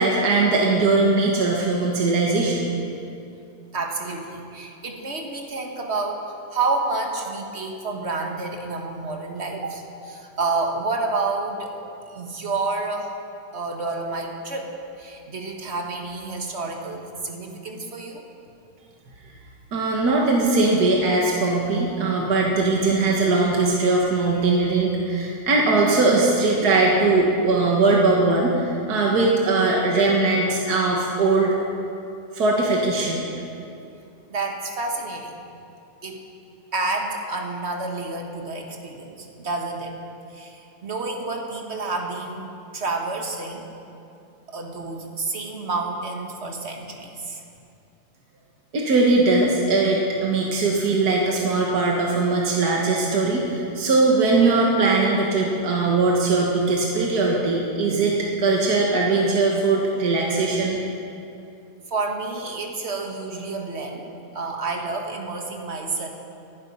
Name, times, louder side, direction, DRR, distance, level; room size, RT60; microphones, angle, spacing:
voice 1, 0.0-2.7 19.7-31.5 32.3-33.2 48.7-60.8, right 3 dB, 70° right, -2 dB, 2.0 m, -20 dB
voice 2, 3.7-6.2 6.5-11.7 12.1-13.1 13.5-14.7 15.0-18.2 34.3-35.4 36.0-36.2 36.7-39.9 40.3-43.7 44.5-47.4 61.9-64.1 64.3-66.1, right 3 dB, 40° right, 2 dB, 1.8 m, -29 dB
19.0 x 11.0 x 5.5 m, 2.6 s
omnidirectional pair, 1.7 m